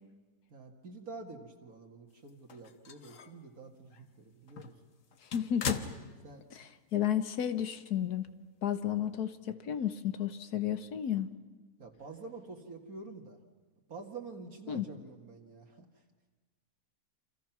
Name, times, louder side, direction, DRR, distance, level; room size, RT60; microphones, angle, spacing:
voice 1, 0.5-4.7 6.2-6.4 11.8-13.4 13.9-15.9, right 3 dB, 60° right, 3 dB, 2.3 m, -47 dB
sound 1, 2.3-3.4 3.9-4.0 4.5-6.6 6.9-7.0 8.3-8.4, left 6 dB, 55° left, 1.4 m, -41 dB
voice 2, 5.3-5.8 6.5-8.3 8.6-11.3 14.7-14.9, left 10 dB, 75° left, 11 dB, 1.6 m, -32 dB
28.5 x 26.5 x 6.0 m, 1.3 s
omnidirectional pair, 1.7 m